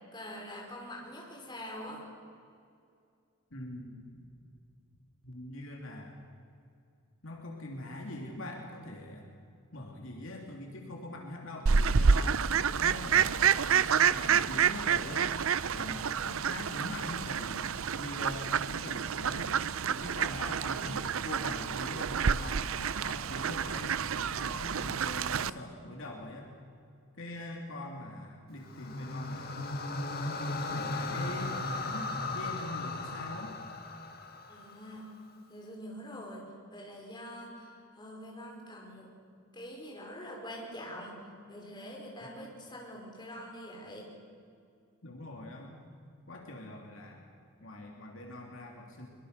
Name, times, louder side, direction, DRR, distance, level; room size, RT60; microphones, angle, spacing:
voice 1, 0.1-2.0 34.5-35.1 35.5-39.1 39.5-41.2 41.5-44.1, equal, 20° left, -1 dB, 5.2 m, -44 dB
voice 2, 3.5-3.9 5.2-6.2 7.2-9.3 9.7-12.5 12.8-15.3 15.7-19.5 19.9-26.5 27.2-29.8 30.7-33.5 42.2-42.3 45.0-45.8 46.3-47.2 47.6-49.1, left 1 dB, 60° left, 1 dB, 3.1 m, -43 dB
Fowl, 11.7-25.5, right 6 dB, 65° right, 0.6 m, -29 dB
sound 1, 28.6-34.9, left 2 dB, 45° left, 1.7 m, -36 dB
24.5 x 23.0 x 6.8 m, 2.4 s
head